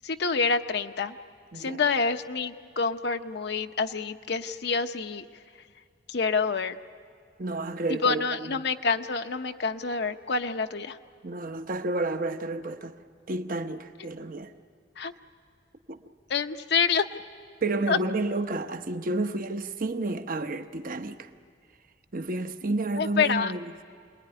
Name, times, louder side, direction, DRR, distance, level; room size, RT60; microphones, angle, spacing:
voice 1, 0.0-1.2 1.5-5.2 6.1-6.8 7.9-11.0 15.0-15.1 16.3-17.1 17.9-18.0 23.0-23.5, left 5 dB, 65° left, 0.8 m, -27 dB
voice 2, 7.4-8.5 11.2-12.9 13.3-14.5 15.9-16.0 17.6-21.3 22.1-23.6, right 2 dB, 50° right, 0.9 m, -30 dB
28.0 x 21.0 x 9.9 m
head